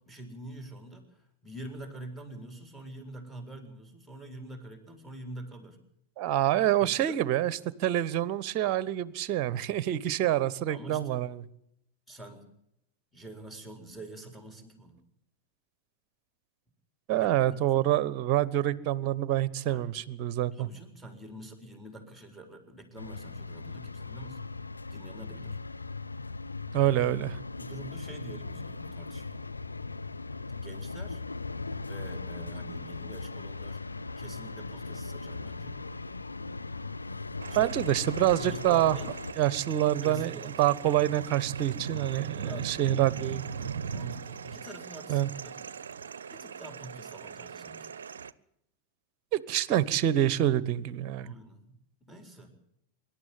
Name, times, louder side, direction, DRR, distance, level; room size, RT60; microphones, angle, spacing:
voice 1, 0.0-5.8 6.6-7.2 10.7-11.2 12.1-12.5 13.1-15.0 17.2-17.7 19.7-19.9 20.5-24.4 24.9-25.6 27.6-29.5 30.6-31.2 31.8-33.8 34.2-35.9 37.5-38.0 38.4-39.1 40.0-40.9 42.4-42.9 43.4-45.5 46.3-47.9 51.2-51.8 52.1-52.5, right 1 dB, 5° left, 5 dB, 4.3 m, -46 dB
voice 2, 6.2-11.4 17.1-20.7 26.7-27.4 37.5-39.0 39.4-40.3 40.6-43.5 45.1-45.3 49.3-51.3, right 13 dB, 40° right, 20 dB, 1.0 m, -26 dB
sound 1, 23.0-39.3, left 3 dB, 80° left, 0.9 m, -38 dB
sound 2, 37.4-48.3, right 6 dB, 65° right, 0.7 m, -39 dB
24.5 x 11.5 x 9.2 m, 0.77 s
figure-of-eight pair, 90°, 0 cm